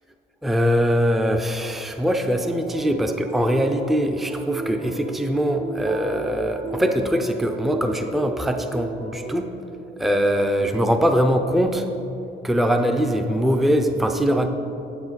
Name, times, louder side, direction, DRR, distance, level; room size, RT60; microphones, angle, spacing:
voice 1, 0.4-9.5 10.0-11.8 12.4-14.5, equal, ahead, 6 dB, 0.5 m, -22 dB
sound 1, 2.4-9.4, right 3 dB, 50° right, 1.2 m, -34 dB
9.5 x 8.5 x 4.0 m, 3.0 s
cardioid pair, 90°, 20 cm